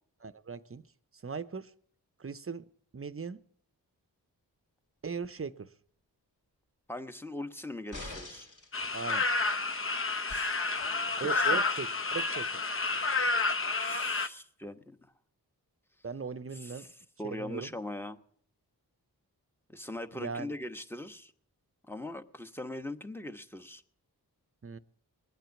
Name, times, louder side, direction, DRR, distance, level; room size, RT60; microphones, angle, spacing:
voice 1, 0.2-0.9 1.2-1.7 2.2-2.7 2.9-3.4 5.0-5.7 8.9-9.3 11.2-12.6 16.0-16.9 17.2-17.7 20.1-20.5 24.6-24.8, right 5 dB, 35° right, 0.8 m, -38 dB
voice 2, 6.9-8.5 10.3-11.6 13.8-15.0 16.6-18.2 19.7-21.3 21.9-23.8, left 1 dB, 5° left, 1.2 m, -41 dB
sound 1, 7.9-8.7 10.3-10.4, left 2 dB, 50° left, 2.7 m, -43 dB
sound 2, 8.7-14.3, left 3 dB, 30° left, 0.8 m, -30 dB
20.5 x 9.1 x 7.2 m
cardioid pair, 45°, 40 cm